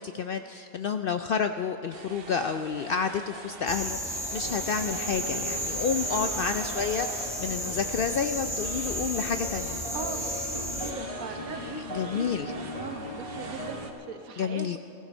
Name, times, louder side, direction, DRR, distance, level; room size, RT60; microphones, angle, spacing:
voice 1, 0.0-9.8 11.5-11.6 11.9-12.5 14.4-14.8, left 6 dB, 70° left, 8 dB, 0.5 m, -30 dB
sound 1, 1.9-13.9, right 3 dB, 45° right, 1.1 m, -44 dB
sound 2, 3.7-10.9, right 1 dB, ahead, 1.2 m, -33 dB
sound 3, 4.0-13.9, left 1 dB, 25° left, 1.2 m, -40 dB
voice 2, 9.9-14.8, right 5 dB, 80° right, 6 dB, 1.5 m, -40 dB
16.0 x 15.5 x 5.4 m, 2.8 s
omnidirectional pair, 1.4 m